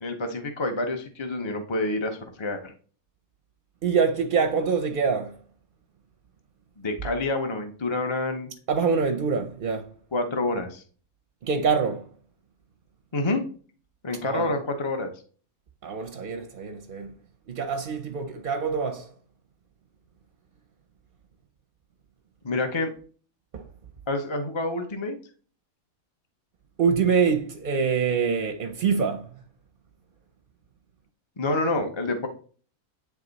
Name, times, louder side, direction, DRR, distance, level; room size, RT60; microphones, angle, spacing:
voice 1, 0.0-2.7 6.8-8.5 10.1-10.8 13.1-13.4 14.0-15.1 22.4-22.9 24.1-25.1 31.4-32.3, left 2 dB, 25° left, 0.6 m, -28 dB
voice 2, 3.8-5.4 8.7-9.9 11.4-12.1 14.2-14.5 15.8-17.1 17.5-19.1 23.5-23.7 26.8-29.3, right 5 dB, 50° right, 0.7 m, -25 dB
9.5 x 3.4 x 4.0 m
omnidirectional pair, 1.5 m